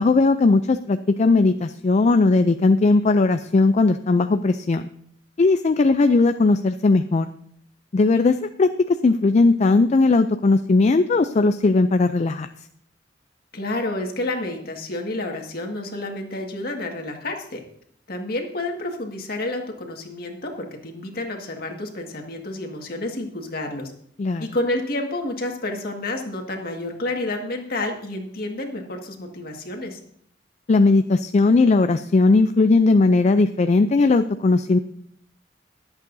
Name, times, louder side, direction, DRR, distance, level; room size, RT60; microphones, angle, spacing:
voice 1, 0.0-4.8 5.4-7.3 7.9-8.7 9.0-12.5 24.2-24.5 30.7-34.8, left 3 dB, 40° left, 9 dB, 0.4 m, -18 dB
voice 2, 13.5-17.6 18.1-23.9 24.4-30.0, left 2 dB, 55° left, 2 dB, 1.8 m, -29 dB
22.0 x 8.1 x 2.7 m, 0.65 s
head